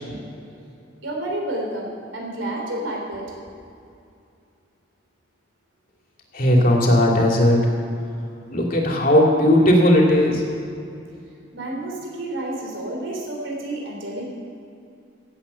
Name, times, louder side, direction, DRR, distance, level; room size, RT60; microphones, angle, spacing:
voice 1, 1.0-3.3 11.5-14.2, right 1 dB, 85° right, -2 dB, 3.7 m, -30 dB
voice 2, 6.3-7.6 8.5-10.4, left 1 dB, 45° left, -1 dB, 2.6 m, -16 dB
17.0 x 8.4 x 6.9 m, 2.5 s
head